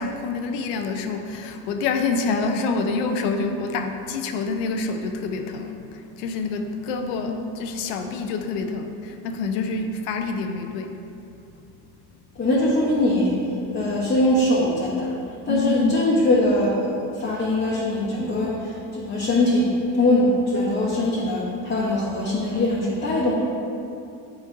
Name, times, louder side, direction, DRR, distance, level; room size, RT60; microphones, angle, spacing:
voice 1, 0.0-5.8 6.2-10.9 15.5-15.9, left 4 dB, 85° left, 5 dB, 0.7 m, -27 dB
voice 2, 12.3-13.4 13.7-15.1 15.4-19.6 19.9-23.3, left 1 dB, 25° left, -7 dB, 1.0 m, -22 dB
8.5 x 4.4 x 2.6 m, 2.7 s
cardioid pair, 120°, 41 cm